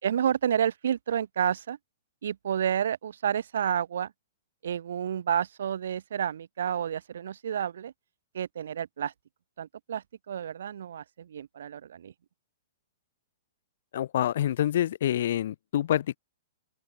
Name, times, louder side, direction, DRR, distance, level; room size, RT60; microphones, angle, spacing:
voice 1, 0.0-1.8 2.2-4.1 4.6-7.9 8.3-9.1 9.6-12.1, right 9 dB, 75° right, 2.7 m, -30 dB
voice 2, 13.9-16.2, left 11 dB, 65° left, 2.0 m, -27 dB
open air
hypercardioid pair, 130°, 0 cm